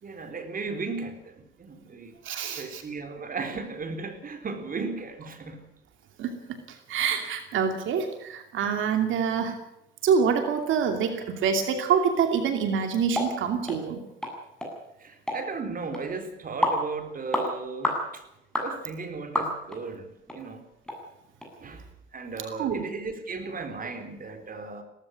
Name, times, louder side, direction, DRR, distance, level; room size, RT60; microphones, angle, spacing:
voice 1, 0.0-2.1 2.5-5.6 11.1-11.2 15.0-18.2 18.6-20.6 21.6-24.8, right 4 dB, 45° right, 8 dB, 4.0 m, -36 dB
voice 2, 2.2-2.8 6.2-9.6 10.0-14.0 22.6-22.8, right 6 dB, 80° right, 6 dB, 2.8 m, -26 dB
sound 1, 13.1-13.3 13.7-13.8 14.2-14.3 14.6-14.7 15.3-15.4 15.9-16.0 16.6-16.8 17.3-17.5 17.8-18.0 18.5-18.7 19.4-19.8 20.3-20.4 20.9-21.0 21.4-21.5, left 1 dB, 5° left, 7.9 m, -27 dB
18.0 x 15.0 x 9.8 m, 0.84 s
cardioid pair, 90°, 20 cm